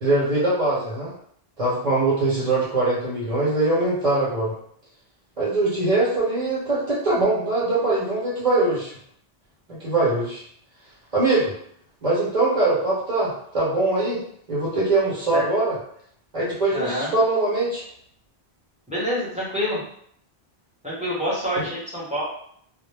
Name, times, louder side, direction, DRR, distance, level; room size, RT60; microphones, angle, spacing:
voice 1, 0.0-1.1 1.6-4.5 5.4-8.9 9.7-10.4 11.1-11.5 12.0-14.2 14.5-15.7 16.3-17.8, right 2 dB, 45° right, -8 dB, 0.8 m, -22 dB
voice 2, 16.7-17.1 18.9-19.8 20.8-22.2, equal, 5° right, -8 dB, 0.9 m, -26 dB
2.2 x 2.0 x 3.2 m, 0.67 s
omnidirectional pair, 1.0 m